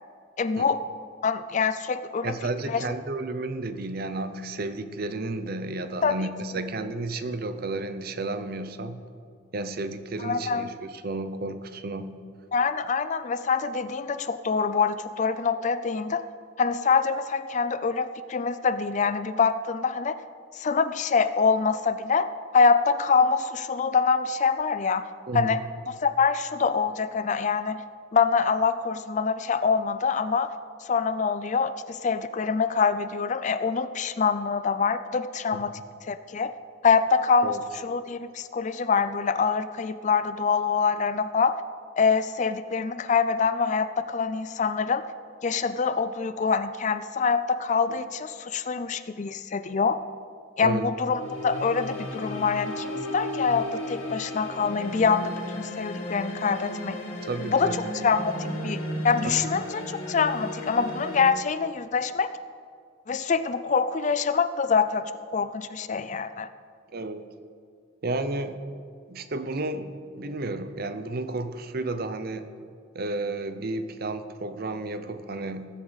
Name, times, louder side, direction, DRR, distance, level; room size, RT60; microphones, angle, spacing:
voice 1, 0.4-0.8 1.2-2.4 2.7-2.8 6.0-6.2 10.2-10.7 12.5-16.2 16.6-20.2 20.5-22.3 22.5-25.1 25.3-25.6 25.9-27.8 28.1-30.5 30.8-35.8 36.1-36.5 36.8-37.6 37.8-41.6 42.0-45.0 45.4-50.0 50.6-57.0 57.5-62.3 63.1-65.0 65.3-66.5, left 5 dB, 40° left, 12 dB, 0.4 m, -25 dB
voice 2, 2.2-9.0 9.5-12.1 25.3-25.7 35.7-35.8 37.4-37.6 47.9-48.0 50.6-50.8 57.2-57.8 59.2-59.3 66.9-67.2 68.0-68.6 69.1-72.5 72.9-75.7, right 2 dB, 50° right, 10 dB, 0.7 m, -32 dB
sound 1, 51.0-61.3, left 1 dB, 90° left, 2.1 m, -34 dB
19.5 x 8.1 x 4.1 m, 2.2 s
head